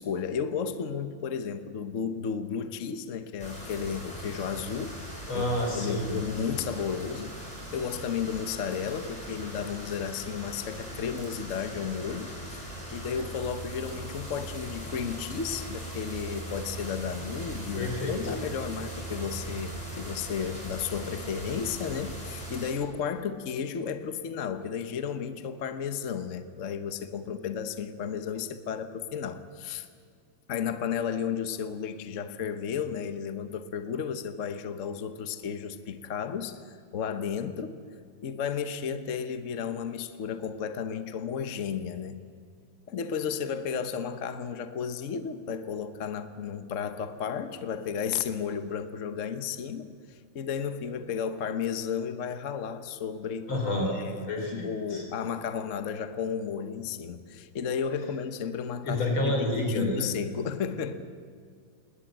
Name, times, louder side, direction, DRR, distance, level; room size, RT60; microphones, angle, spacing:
voice 1, 0.0-5.0 5.3-5.4 5.7-7.4 7.7-12.6 12.9-29.9 30.5-37.8 38.2-42.2 42.9-53.5 53.9-61.0, left 7 dB, 45° left, 10 dB, 1.1 m, -33 dB
sound 1, 3.4-22.7, right 1 dB, 15° left, 5.8 m, -40 dB
voice 2, 5.3-6.2 17.8-18.1 53.5-54.0 54.3-55.0 58.8-60.1, left 1 dB, 75° left, 3 dB, 5.0 m, -29 dB
21.0 x 19.0 x 9.1 m, 2.2 s
omnidirectional pair, 2.2 m